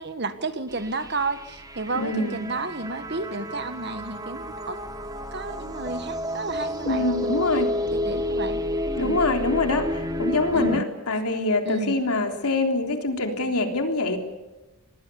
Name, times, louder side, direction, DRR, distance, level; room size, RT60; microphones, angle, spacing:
voice 1, 0.0-4.8 5.3-8.6 9.0-9.2 10.5-10.8 11.6-11.9, right 3 dB, 50° right, 10 dB, 1.6 m, -32 dB
sound 1, 0.7-10.8, equal, 15° right, 1.4 m, -30 dB
voice 2, 1.9-2.4 6.8-7.7 9.0-14.2, left 2 dB, 90° left, 4 dB, 3.6 m, -25 dB
25.5 x 20.5 x 7.0 m, 1.1 s
head